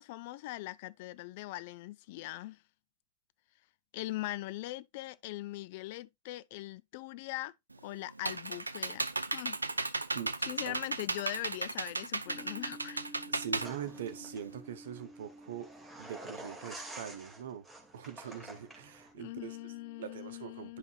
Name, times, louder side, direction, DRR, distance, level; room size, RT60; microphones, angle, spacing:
voice 1, 0.0-2.6 3.9-7.5 7.8-9.0 9.3-9.6 10.5-13.0 19.2-20.8, left 18 dB, 50° left, 0.3 m, -41 dB
Computer keyboard, 7.7-14.6, right 3 dB, 80° right, 0.4 m, -35 dB
sound 1, 12.3-20.1, right 1 dB, 20° left, 0.9 m, -54 dB
voice 2, 13.3-15.7 16.0-17.7 17.9-19.7 20.0-20.8, right 8 dB, 60° right, 0.9 m, -42 dB
sound 2, 13.6-19.1, right 1 dB, ahead, 2.1 m, -49 dB
10.0 x 5.4 x 2.4 m
figure-of-eight pair, 90°, 0 cm